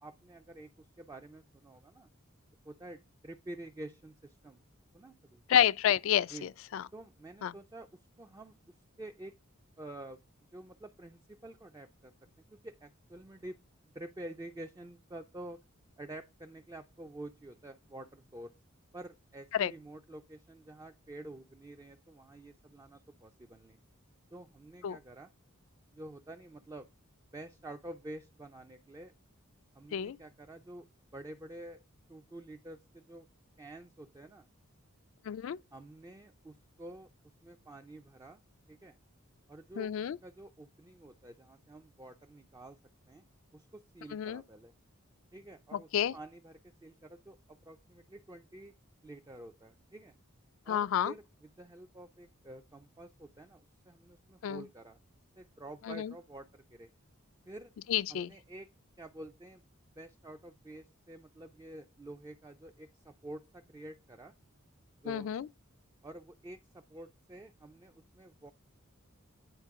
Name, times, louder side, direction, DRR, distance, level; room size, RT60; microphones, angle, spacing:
voice 1, 0.0-2.1 2.6-4.6 4.9-5.4 6.3-6.5 6.9-7.9 8.2-8.5 9.0-9.3 9.8-10.2 10.5-12.1 12.5-13.6 13.8-15.6 16.0-18.5 18.9-23.8 24.3-25.3 25.9-26.9 27.3-29.1 29.7-30.9 31.1-33.3 33.6-34.5 35.7-37.1 37.4-38.4 38.7-39.0 39.5-42.8 43.1-43.2 43.5-44.7 45.3-48.7 49.0-50.1 50.6-55.0 55.4-56.9 57.5-57.7 58.1-58.7 59.0-59.6 60.0-64.3 65.0-65.3 66.0-68.5, right 1 dB, 15° right, 0.3 m, -49 dB
voice 2, 5.5-6.8 7.4-7.5 19.5-19.7 24.8-25.0 29.9-30.2 35.3-35.6 39.8-40.2 44.1-44.4 45.7-46.1 50.7-51.1 54.4-54.6 55.9-56.1 57.9-58.3 65.1-65.4, left 9 dB, 65° left, 0.3 m, -30 dB
9.1 x 3.7 x 3.5 m
head